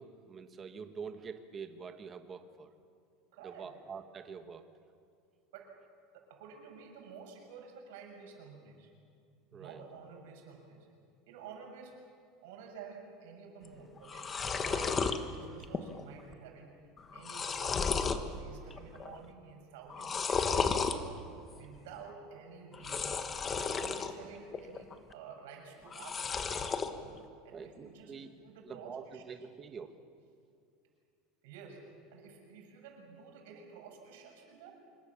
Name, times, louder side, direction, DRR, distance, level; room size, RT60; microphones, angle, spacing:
voice 1, 0.0-2.7 3.4-4.6 9.5-9.8 14.8-14.9 23.8-24.0 27.5-28.3 28.6-30.0, right 6 dB, 25° right, 8 dB, 1.5 m, -46 dB
voice 2, 3.3-3.7 5.5-5.7 6.1-8.9 9.5-10.9 11.3-12.0 12.4-16.8 17.1-21.2 21.5-23.2 23.5-26.4 26.9-29.2 31.4-34.8, right 5 dB, 75° right, 2 dB, 6.7 m, -51 dB
sound 1, 13.7-13.8 14.0-15.2 15.6-16.1 16.3-16.4 17.0-18.3 18.7-19.2 19.9-21.0 22.7-24.1 24.5-25.1 25.9-26.9, left 5 dB, 20° left, 1.3 m, -33 dB
26.0 x 23.0 x 7.3 m, 2.4 s
supercardioid pair, 155°, 0 cm